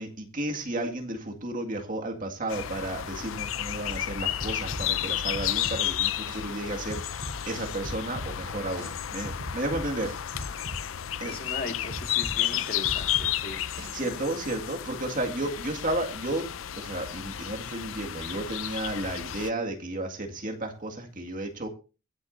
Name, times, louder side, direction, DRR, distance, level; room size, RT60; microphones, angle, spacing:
voice 1, 0.0-10.6 11.2-11.3 13.9-16.5 16.7-21.7, right 1 dB, 40° right, 3 dB, 2.0 m, -33 dB
sound 1, 2.5-19.5, left 11 dB, 75° left, 0.5 m, -32 dB
sound 2, 4.4-5.8 6.3-6.4 6.9-8.3 8.8-8.9 9.2-10.8 11.3-11.4 11.9-13.3 13.8-13.9, equal, 65° right, 4.4 m, -38 dB
voice 2, 11.0-13.8 14.2-14.3, left 2 dB, 45° left, 4 dB, 2.0 m, -39 dB
22.5 x 8.2 x 2.7 m, 0.32 s
head